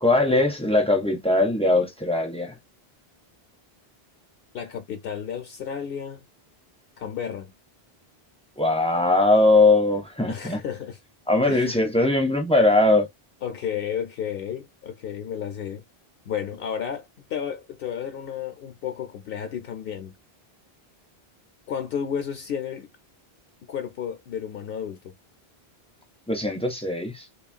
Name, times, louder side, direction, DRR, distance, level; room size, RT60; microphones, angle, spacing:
voice 1, 0.0-2.5 8.6-10.6 11.3-13.1 26.3-27.3, left 2 dB, 10° left, 0.5 m, -20 dB
voice 2, 4.5-6.3 7.0-7.5 10.3-11.0 11.5-11.8 13.4-15.8 16.3-20.2 21.7-22.9 23.7-25.2, left 8 dB, 70° left, 0.8 m, -32 dB
3.0 x 2.3 x 2.4 m
omnidirectional pair, 1.0 m